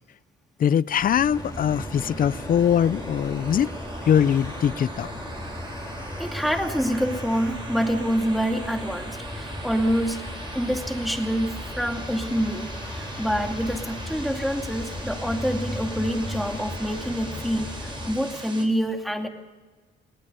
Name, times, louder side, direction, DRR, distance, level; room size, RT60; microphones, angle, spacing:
voice 1, 0.6-3.7 4.1-5.1, left 9 dB, 45° left, 0.5 m, -22 dB
sound 1, 1.0-18.7, right 2 dB, 25° right, 4.1 m, -40 dB
sound 2, 1.3-18.1, left 1 dB, 20° left, 3.8 m, -36 dB
voice 2, 6.2-10.2 10.5-19.3, equal, ahead, 2.5 m, -26 dB
20.0 x 19.0 x 6.8 m
cardioid pair, 90°, 20 cm